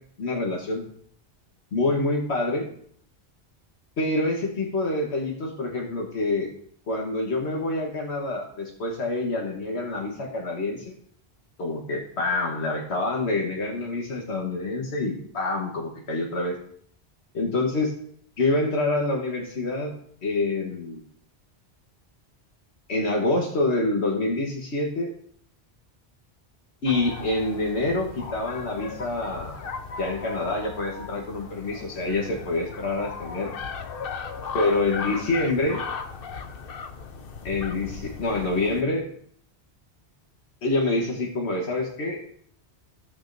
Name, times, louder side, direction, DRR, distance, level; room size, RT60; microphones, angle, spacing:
voice 1, 0.2-0.8 1.7-2.7 4.0-6.5 6.9-10.9 11.6-16.6 17.3-17.9 18.4-19.9 20.2-21.0 22.9-25.1 26.8-29.6 30.0-33.5 34.5-35.8 37.4-39.1 40.6-42.2, left 2 dB, 85° left, -1 dB, 1.5 m, -26 dB
sound 1, 26.9-38.8, left 5 dB, 60° left, 0.9 m, -37 dB
16.0 x 6.3 x 2.6 m, 0.62 s
omnidirectional pair, 1.1 m